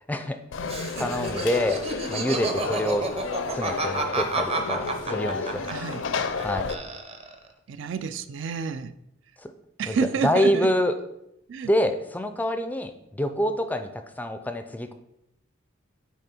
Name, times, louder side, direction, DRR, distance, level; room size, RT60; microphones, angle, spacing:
voice 1, 0.1-0.4 1.0-1.8 2.1-3.1 3.5-5.7 6.4-6.7 9.4-9.5 9.9-10.0 10.2-10.9 11.6-14.9, equal, 10° left, 8 dB, 0.4 m, -26 dB
Conversation / Crowd, 0.5-6.8, left 4 dB, 70° left, 0.5 m, -32 dB
Laughter, 0.6-6.4 6.7-7.5, right 3 dB, 30° right, 0.7 m, -30 dB
voice 2, 5.7-6.0 7.7-8.9 9.8-10.7 11.5-11.7, right 6 dB, 65° right, 12 dB, 0.4 m, -29 dB
8.9 x 3.4 x 4.3 m, 0.81 s
head